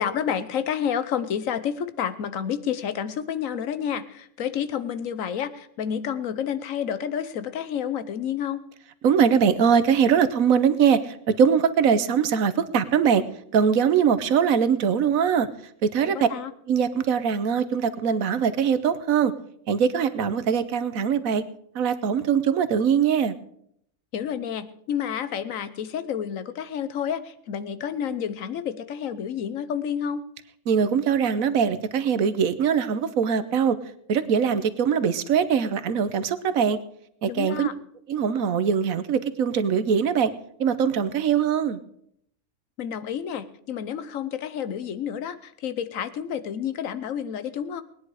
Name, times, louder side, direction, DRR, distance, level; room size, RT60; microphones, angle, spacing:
voice 1, 0.0-8.6 16.0-16.5 24.1-30.2 37.3-37.7 42.8-47.8, left 8 dB, 80° left, 13 dB, 1.2 m, -30 dB
voice 2, 9.0-13.2 13.5-15.5 15.8-16.3 16.7-19.3 19.7-21.4 21.7-23.4 30.7-33.8 34.1-36.8 37.2-37.7 38.1-40.3 40.6-41.8, right 7 dB, 85° right, 13 dB, 1.3 m, -22 dB
19.5 x 10.0 x 4.8 m, 0.70 s
omnidirectional pair, 1.4 m